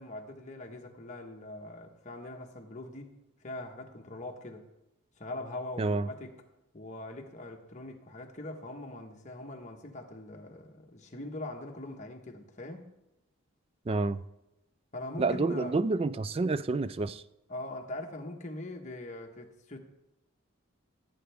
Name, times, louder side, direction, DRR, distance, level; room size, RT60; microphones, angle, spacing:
voice 1, 0.0-3.1 3.4-4.7 5.2-6.4 6.7-12.9 14.9-15.8 17.5-19.8, left 2 dB, 35° left, 1.3 m, -42 dB
voice 2, 13.9-14.2 15.2-17.2, right 3 dB, 25° right, 0.3 m, -29 dB
16.0 x 8.8 x 3.5 m
head